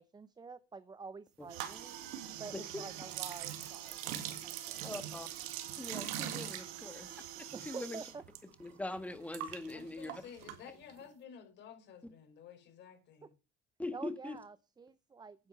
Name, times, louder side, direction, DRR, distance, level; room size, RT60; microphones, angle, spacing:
voice 1, 0.0-2.0 2.4-4.1 4.4-5.0 7.5-8.2 13.2-13.3 13.9-15.5, right 4 dB, 20° right, 0.7 m, -48 dB
sound 1, 1.5-7.9, right 7 dB, 55° right, 1.2 m, -54 dB
sound 2, 1.5-8.4 8.6-11.0, right 11 dB, 85° right, 1.8 m, -43 dB
voice 2, 2.5-2.8 4.8-5.3 5.8-7.2 7.6-8.0 8.6-10.2 13.8-14.4, left 2 dB, 5° left, 1.6 m, -42 dB
voice 3, 9.7-13.3, left 7 dB, 60° left, 4.5 m, -53 dB
9.5 x 7.7 x 5.7 m
supercardioid pair, 90°, 20 cm